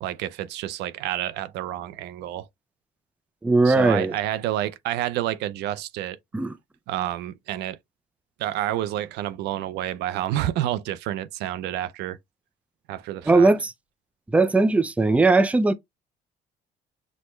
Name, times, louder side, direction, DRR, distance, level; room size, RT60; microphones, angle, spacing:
voice 1, 0.0-2.5 3.6-6.2 6.9-7.8 8.4-12.2 12.9-13.5, right 13 dB, 85° right, 0.5 m, -29 dB
voice 2, 3.4-4.1 6.3-6.6 13.3-13.7 14.3-15.7, right 3 dB, 10° right, 0.4 m, -19 dB
6.4 x 2.2 x 3.1 m
cardioid pair, 110°, 17 cm